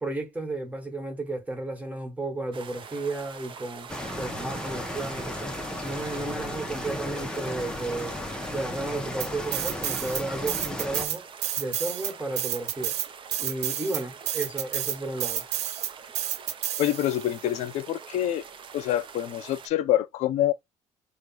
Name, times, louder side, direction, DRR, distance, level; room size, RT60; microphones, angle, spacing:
voice 1, 0.0-3.9 4.2-5.5 5.8-8.2 8.5-11.3 11.6-13.0 13.4-15.5, right 2 dB, 10° right, 1.7 m, -33 dB
sound 1, 2.5-19.7, right 6 dB, 45° right, 0.8 m, -45 dB
sound 2, 3.9-11.1, left 1 dB, 5° left, 0.9 m, -35 dB
sound 3, 9.2-10.2 10.5-17.3, right 11 dB, 65° right, 0.6 m, -30 dB
voice 2, 16.8-18.4 18.7-20.5, left 12 dB, 70° left, 0.6 m, -26 dB
3.3 x 2.5 x 4.4 m
supercardioid pair, 85°, 12 cm